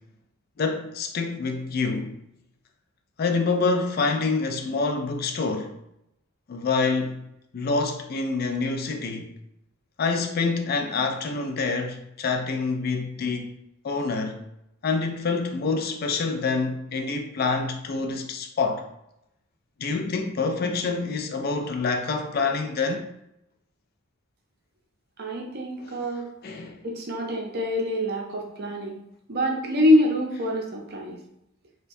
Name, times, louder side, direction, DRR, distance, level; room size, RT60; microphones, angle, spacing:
voice 1, 0.6-2.2 3.2-5.8 6.5-7.2 7.5-9.3 10.0-13.5 13.8-14.4 14.8-18.9 19.8-23.1 25.8-26.1 26.4-26.8, left 4 dB, 45° left, 0.3 m, -26 dB
voice 2, 25.2-26.3 26.8-29.0 29.3-31.2, left 1 dB, 45° right, 0.6 m, -25 dB
4.3 x 2.2 x 2.6 m
head